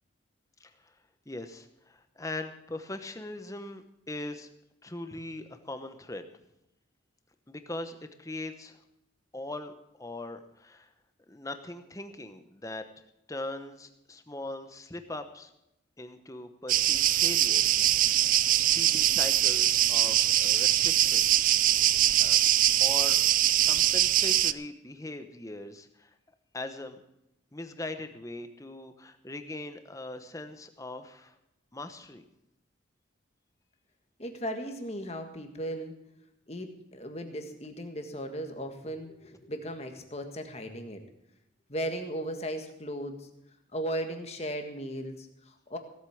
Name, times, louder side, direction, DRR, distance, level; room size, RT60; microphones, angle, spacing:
voice 1, 0.6-1.0 1.3-4.5 4.8-6.3 7.5-8.8 9.3-9.7 10.0-10.9 11.3-12.9 13.3-15.5 16.0-17.8 18.2-21.3 22.2-22.4 22.8-23.2 23.6-26.1 26.5-27.0 27.5-31.4 31.7-32.2, left 2 dB, 15° left, 8 dB, 1.0 m, -40 dB
sound 1, 16.7-24.5, right 13 dB, 45° right, 0.4 m, -23 dB
voice 2, 34.2-35.9 36.5-41.0 41.7-43.3 43.7-45.8, equal, 35° left, 5 dB, 1.6 m, -36 dB
17.0 x 8.3 x 7.0 m, 0.85 s
head